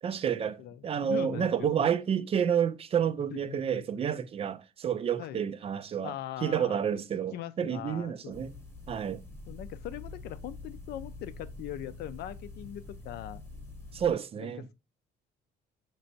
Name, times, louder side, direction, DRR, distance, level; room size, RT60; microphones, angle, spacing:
voice 1, 0.0-6.1 6.4-8.5 8.9-9.2 13.9-14.7, right 8 dB, 35° right, 0.4 m, -30 dB
voice 2, 0.6-1.9 3.3-3.8 5.2-5.4 6.0-7.0 7.3-8.4 9.5-13.4 14.4-14.7, left 11 dB, 70° left, 0.4 m, -41 dB
sound 1, 8.3-14.1, left 2 dB, 15° left, 1.0 m, -45 dB
4.4 x 3.0 x 2.5 m
cardioid pair, 110°, 17 cm